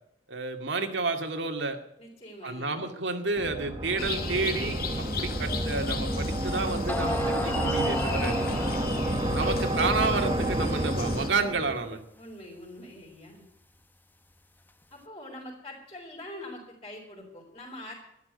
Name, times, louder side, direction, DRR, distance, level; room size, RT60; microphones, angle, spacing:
voice 1, 0.3-1.8 2.4-8.4 9.3-12.0, right 3 dB, 85° right, 5 dB, 2.1 m, -30 dB
voice 2, 2.0-2.8 8.5-9.3 12.2-13.4 14.9-17.9, left 1 dB, 30° left, -7 dB, 4.1 m, -44 dB
sound 1, 3.4-11.9, right 1 dB, 25° right, 1.3 m, -29 dB
sound 2, 4.0-11.3, left 5 dB, 55° left, 1.8 m, -38 dB
sound 3, 5.8-5.9 6.5-6.6 6.9-9.3, left 2 dB, 10° left, 0.8 m, -34 dB
12.0 x 11.5 x 8.0 m, 0.78 s
head